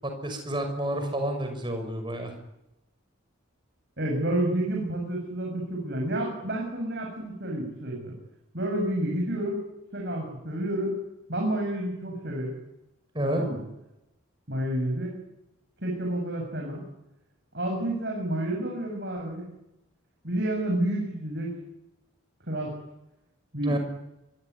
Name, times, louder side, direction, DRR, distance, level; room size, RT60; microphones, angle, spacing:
voice 1, 0.0-2.3 13.1-13.4 23.6-23.8, right 1 dB, 25° right, 5 dB, 5.9 m, -30 dB
voice 2, 4.0-8.1 8.5-9.6 9.9-11.0 11.3-12.5 13.2-13.6 14.5-15.2 15.8-16.8 17.5-19.5 20.2-21.6 22.4-22.8 23.5-23.8, right 1 dB, 55° right, 1 dB, 7.1 m, -29 dB
25.0 x 23.0 x 9.7 m, 0.91 s
head